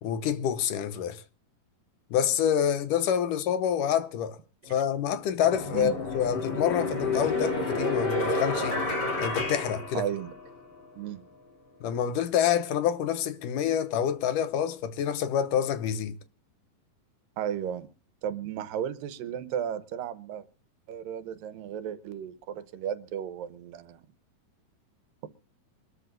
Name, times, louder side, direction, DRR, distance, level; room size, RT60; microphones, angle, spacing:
voice 1, 0.0-1.2 2.1-4.4 4.7-8.8 9.2-10.0 11.8-16.1, left 9 dB, 75° left, 2.5 m, -27 dB
sound 1, 4.7-4.8 5.4-10.6, left 2 dB, 30° left, 3.3 m, -30 dB
voice 2, 10.0-10.3 11.0-11.2 17.4-17.9 18.2-20.5 20.9-24.0, right 9 dB, 90° right, 2.6 m, -34 dB
25.0 x 13.0 x 2.5 m
omnidirectional pair, 4.0 m